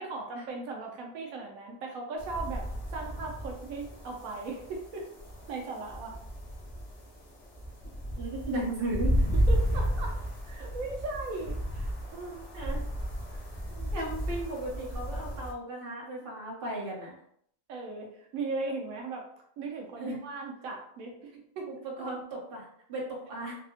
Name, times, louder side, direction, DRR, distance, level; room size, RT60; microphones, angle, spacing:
voice 1, 0.0-5.1 5.5-6.2 9.3-10.2 10.4-12.5 13.3-13.4 13.7-13.9 17.7-19.3 19.6-21.7, right 3 dB, 85° right, 0 dB, 1.0 m, -38 dB
sound 1, 2.2-15.5, equal, 40° left, 0.5 m, -33 dB
voice 2, 8.2-9.3 12.5-12.8 13.9-17.1 20.0-20.2 21.7-23.6, right 1 dB, 50° right, -3 dB, 1.0 m, -36 dB
3.5 x 2.0 x 2.7 m, 0.68 s
omnidirectional pair, 1.4 m